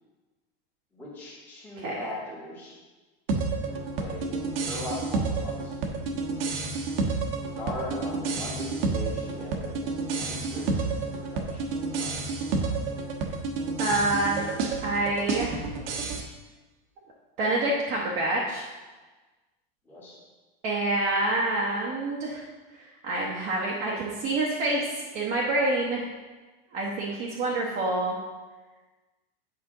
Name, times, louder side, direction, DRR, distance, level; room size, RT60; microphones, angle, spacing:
voice 1, 0.9-2.8 3.6-4.4 4.7-6.5 7.6-12.8 19.8-20.2, left 1 dB, 5° left, -8 dB, 1.4 m, -40 dB
sound 1, 3.3-16.2, right 3 dB, 75° right, 1.1 m, -30 dB
voice 2, 13.8-14.5 14.8-15.6 17.4-18.7 20.6-22.4 22.8-24.9 25.1-26.0 26.7-28.2, right 2 dB, 25° right, -5 dB, 0.8 m, -27 dB
8.2 x 5.8 x 3.8 m, 1.3 s
supercardioid pair, 170°, 29 cm